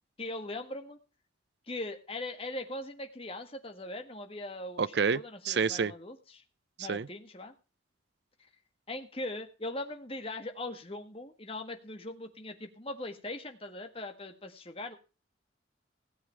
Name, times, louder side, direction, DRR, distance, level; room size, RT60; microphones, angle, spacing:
voice 1, 0.2-1.0 1.7-6.4 6.8-7.5 8.4-8.5 8.9-15.0, left 2 dB, 30° left, 1.6 m, -40 dB
voice 2, 4.8-5.9 6.8-7.1, right 5 dB, 60° right, 0.5 m, -29 dB
16.5 x 8.1 x 4.5 m
head